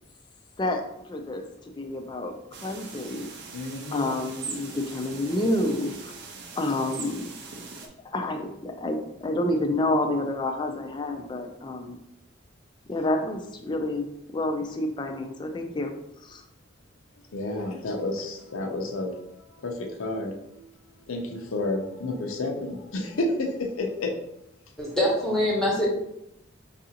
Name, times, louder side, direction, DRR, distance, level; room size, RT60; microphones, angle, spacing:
voice 1, 1.1-3.3 3.9-6.1 6.6-7.3 8.0-12.0 12.9-14.1 14.3-15.9 16.2-16.4, left 1 dB, 20° left, 4 dB, 0.3 m, -29 dB
sound 1, 2.5-7.9, right 4 dB, 55° right, 0.5 m, -41 dB
voice 2, 3.5-4.1 17.1-20.6 21.1-24.1, left 2 dB, 90° left, 2 dB, 0.6 m, -31 dB
voice 3, 24.8-25.9, left 1 dB, 5° left, -6 dB, 0.8 m, -24 dB
4.7 x 2.5 x 2.8 m, 0.82 s
head